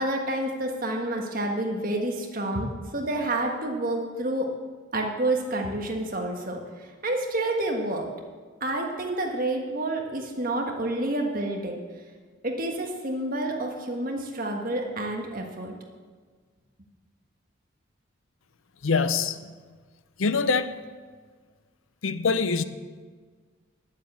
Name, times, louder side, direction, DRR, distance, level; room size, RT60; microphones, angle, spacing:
voice 1, 0.0-4.5 4.9-8.1 8.6-11.7 12.4-15.7, right 1 dB, 45° right, 2 dB, 1.6 m, -29 dB
voice 2, 18.8-19.4 20.2-20.7 22.0-22.6, left 4 dB, 80° left, 12 dB, 0.6 m, -24 dB
9.9 x 7.4 x 8.5 m, 1.5 s
head